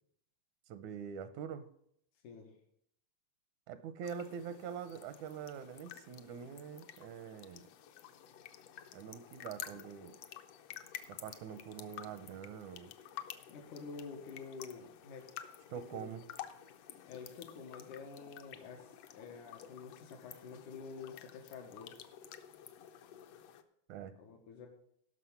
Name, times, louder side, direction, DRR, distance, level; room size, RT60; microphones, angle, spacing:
voice 1, 0.7-1.7 3.7-7.7 8.9-10.2 11.1-12.9 15.7-16.3 23.9-24.1, right 7 dB, 85° right, 12 dB, 2.1 m, -44 dB
voice 2, 2.2-2.5 13.5-15.3 15.7-16.1 17.1-21.9 24.2-24.7, left 5 dB, 90° left, 2 dB, 3.0 m, -49 dB
sound 1, 4.0-23.6, left 10 dB, 70° left, 1.7 m, -51 dB
17.0 x 6.1 x 5.7 m, 0.71 s
omnidirectional pair, 3.4 m